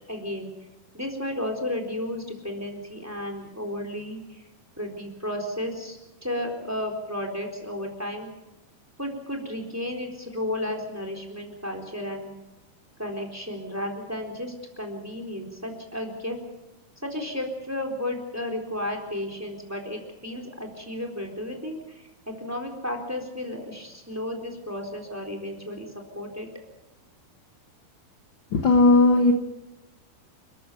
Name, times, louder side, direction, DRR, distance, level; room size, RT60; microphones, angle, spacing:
voice 1, 0.1-0.5 0.9-4.4 4.8-8.3 9.0-12.3 13.0-16.4 17.0-26.5, left 1 dB, 5° right, 4 dB, 3.5 m, -33 dB
voice 2, 28.5-29.3, left 2 dB, 55° left, 4 dB, 1.4 m, -17 dB
29.5 x 14.0 x 7.0 m, 0.97 s
omnidirectional pair, 4.3 m